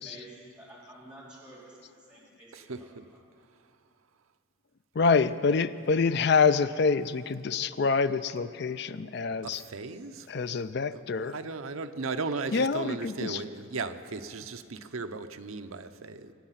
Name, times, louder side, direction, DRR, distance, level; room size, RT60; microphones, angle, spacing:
voice 1, 0.0-3.2, right 1 dB, 5° right, -9 dB, 3.7 m, -51 dB
voice 2, 2.5-3.0 8.7-8.8 9.4-10.3 10.9-11.0 11.3-16.3, right 3 dB, 85° right, 8 dB, 0.7 m, -36 dB
voice 3, 4.9-9.7 10.3-11.4 12.5-13.4, left 5 dB, 50° left, 13 dB, 0.4 m, -26 dB
23.5 x 9.0 x 5.8 m, 2.4 s
head